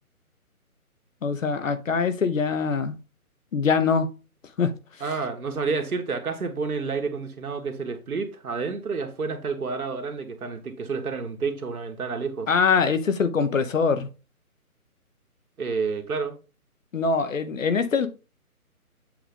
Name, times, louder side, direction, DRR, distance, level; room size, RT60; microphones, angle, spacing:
voice 1, 1.2-3.0 3.5-4.1 4.6-4.7 12.5-14.1 16.9-18.1, left 5 dB, 60° left, 0.9 m, -23 dB
voice 2, 5.0-12.5 15.6-16.3, right 4 dB, 75° right, 1.5 m, -29 dB
7.7 x 2.6 x 5.2 m
hypercardioid pair, 170°, 45 cm